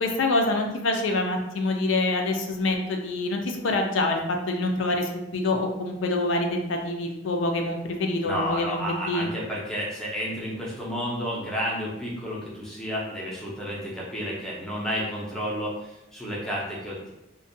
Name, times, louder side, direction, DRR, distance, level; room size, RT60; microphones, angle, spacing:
voice 1, 0.0-9.3, left 2 dB, 75° left, 3 dB, 0.4 m, -26 dB
voice 2, 8.2-17.1, equal, 5° left, -5 dB, 0.5 m, -31 dB
2.5 x 2.2 x 2.5 m, 0.92 s
head